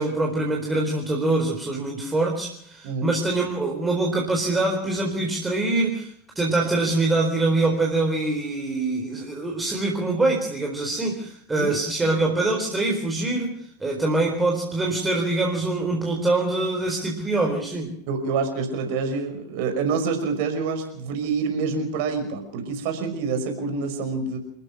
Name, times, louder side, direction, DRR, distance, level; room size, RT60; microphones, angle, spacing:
voice 1, 0.0-13.5 13.8-17.9, right 2 dB, 10° right, 0 dB, 4.1 m, -24 dB
voice 2, 18.1-24.4, right 4 dB, 45° right, 5 dB, 5.5 m, -27 dB
29.0 x 14.0 x 6.3 m, 0.66 s
figure-of-eight pair, 90°, 0 cm